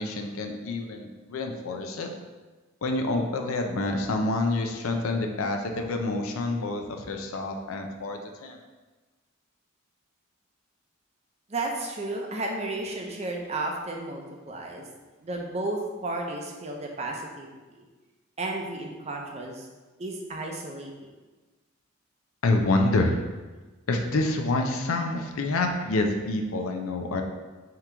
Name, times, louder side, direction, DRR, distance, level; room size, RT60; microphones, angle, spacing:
voice 1, 0.0-2.1 2.8-8.6 22.4-23.2 23.9-27.2, left 2 dB, 80° left, 4 dB, 0.5 m, -27 dB
voice 2, 11.5-14.9 15.2-17.8 18.4-19.7 20.0-21.1, right 2 dB, 30° right, 1 dB, 0.6 m, -33 dB
3.7 x 2.9 x 4.4 m, 1.3 s
head